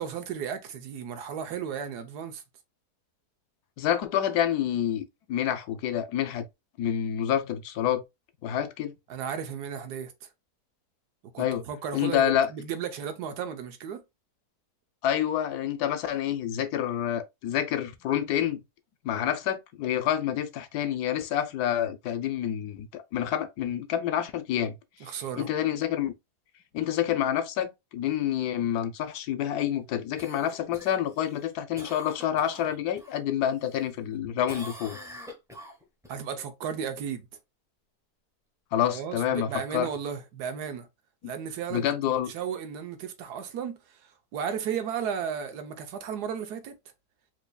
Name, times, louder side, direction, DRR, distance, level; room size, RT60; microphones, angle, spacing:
voice 1, 0.0-2.4 9.1-10.3 11.2-14.0 25.0-25.5 36.1-37.3 38.9-40.9 41.2-46.7, right 7 dB, 85° right, 1.3 m, -34 dB
voice 2, 3.8-6.4 6.8-8.0 8.4-8.9 11.4-11.6 11.9-12.5 15.0-18.6 19.0-24.8 25.4-26.1 26.7-35.0 38.7-39.9 41.7-42.3, left 10 dB, 75° left, 1.1 m, -28 dB
Cough, 30.2-33.2 33.6-34.2 34.5-36.2 40.6-40.7, left 1 dB, 5° right, 0.7 m, -45 dB
4.7 x 2.7 x 2.3 m
omnidirectional pair, 1.7 m